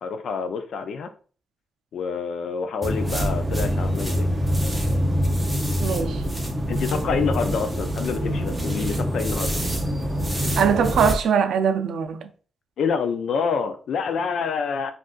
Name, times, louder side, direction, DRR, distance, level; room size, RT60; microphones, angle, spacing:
voice 1, 0.0-1.1 1.9-4.3 6.7-9.6 12.8-14.9, left 5 dB, 75° left, 0.4 m, -27 dB
sound 1, 2.8-11.2, equal, 10° right, 0.7 m, -25 dB
voice 2, 5.8-6.2 10.6-12.3, right 7 dB, 85° right, 0.4 m, -21 dB
2.5 x 2.4 x 3.7 m
cardioid pair, 120°, 0 cm